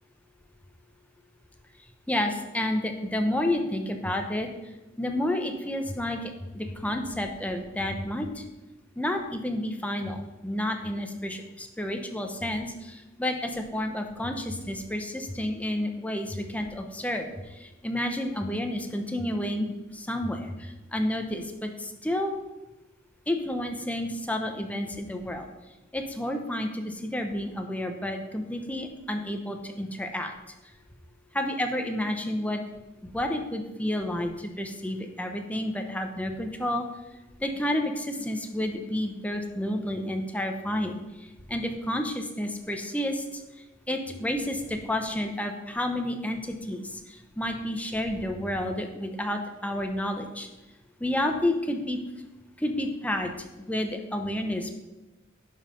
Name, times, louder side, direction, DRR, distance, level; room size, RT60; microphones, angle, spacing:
voice 1, 2.1-4.5 5.0-8.4 9.0-22.4 23.3-25.5 25.9-30.3 31.3-32.6 33.0-36.8 37.4-41.0 41.5-43.4 43.9-50.5 51.0-52.0 52.6-54.7, left 1 dB, 5° left, 4 dB, 0.9 m, -30 dB
11.0 x 5.7 x 5.2 m, 1.0 s
head